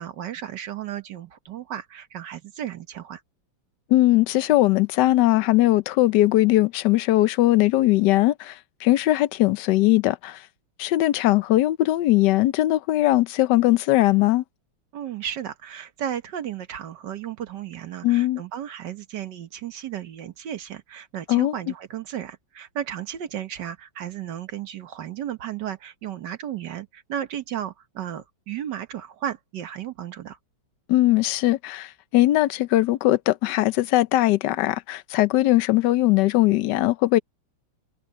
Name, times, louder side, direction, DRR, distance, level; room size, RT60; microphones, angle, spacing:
voice 1, 0.0-3.2 14.9-30.4, right 10 dB, 65° right, 1.7 m, -34 dB
voice 2, 3.9-10.4 10.8-14.4 18.0-18.4 21.3-21.5 30.9-37.2, left 16 dB, 70° left, 1.2 m, -20 dB
omnidirectional pair, 2.1 m